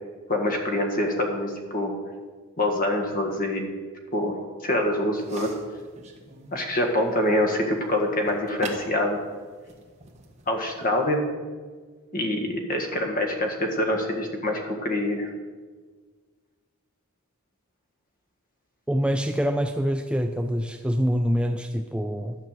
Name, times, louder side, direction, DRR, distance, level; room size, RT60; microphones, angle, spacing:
voice 1, 0.3-1.9 2.6-3.7 4.1-4.4 4.6-5.5 6.5-9.2 10.5-11.2 12.1-15.3, left 1 dB, 45° left, 3 dB, 1.7 m, -25 dB
sound 1, 5.2-11.0, right 3 dB, 35° right, 1.5 m, -43 dB
voice 2, 18.9-22.4, equal, 5° right, 6 dB, 0.4 m, -25 dB
12.0 x 5.8 x 7.7 m, 1.5 s
head